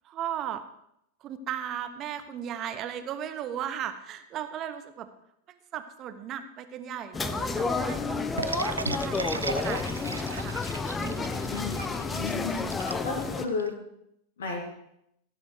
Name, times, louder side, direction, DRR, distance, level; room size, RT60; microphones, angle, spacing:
voice 1, 0.0-0.6 1.2-5.1 5.5-10.6 11.0-11.6, right 9 dB, 35° right, 10 dB, 0.9 m, -37 dB
sound 1, 7.1-13.5, left 4 dB, 15° left, 0.7 m, -31 dB
sound 2, 8.4-13.7, right 4 dB, 80° right, 0.4 m, -36 dB
voice 2, 11.5-12.7 13.0-13.7 14.4-14.6, left 4 dB, 65° left, 2 dB, 2.7 m, -33 dB
15.5 x 7.2 x 4.8 m, 0.78 s
figure-of-eight pair, 90°, 0 cm